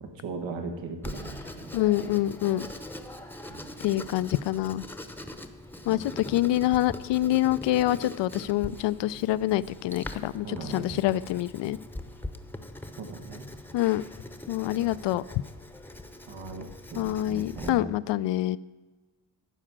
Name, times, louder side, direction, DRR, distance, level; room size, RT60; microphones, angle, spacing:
voice 1, 0.0-1.7 3.5-3.7 5.9-6.0 6.3-6.4 10.4-11.0 13.0-13.4 16.3-17.9, right 4 dB, 85° right, 4 dB, 1.6 m, -38 dB
Writing, 1.0-17.7, left 1 dB, 5° left, 0.8 m, -42 dB
voice 2, 1.7-2.7 3.8-4.8 5.9-11.8 13.7-14.0 14.5-15.2 16.9-18.6, left 14 dB, 70° left, 17 dB, 0.6 m, -26 dB
14.5 x 5.0 x 7.4 m, 1.3 s
cardioid pair, 100°, 45 cm